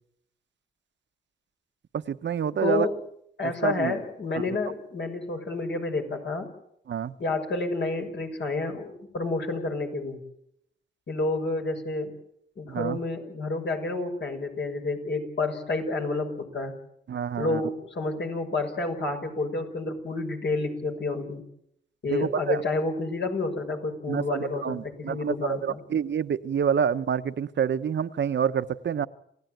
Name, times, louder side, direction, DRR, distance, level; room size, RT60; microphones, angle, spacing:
voice 1, 1.9-2.9 3.4-3.9 6.9-7.1 12.7-13.0 17.1-17.6 22.1-22.6 24.1-29.1, right 8 dB, 70° right, 11 dB, 1.0 m, -27 dB
voice 2, 2.6-3.0 3.4-6.5 7.2-10.2 11.1-12.1 12.6-16.7 17.4-21.4 22.0-25.8, left 3 dB, 70° left, 3 dB, 6.3 m, -29 dB
28.5 x 16.5 x 9.2 m, 0.74 s
cardioid pair, 60°, 19 cm